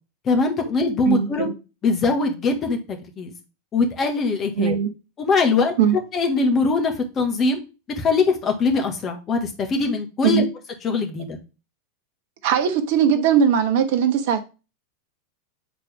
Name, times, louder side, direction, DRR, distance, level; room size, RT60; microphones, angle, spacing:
voice 1, 0.3-1.5 1.8-3.3 3.7-4.8 5.2-5.7 6.1-7.6 8.0-10.4 10.8-11.4, left 3 dB, 30° left, 1.7 m, -22 dB
voice 2, 1.1-1.5 4.6-4.9 5.8-6.0 10.2-10.5 12.4-14.4, right 8 dB, 55° right, 1.1 m, -19 dB
7.4 x 4.2 x 3.5 m
figure-of-eight pair, 85°, 0 cm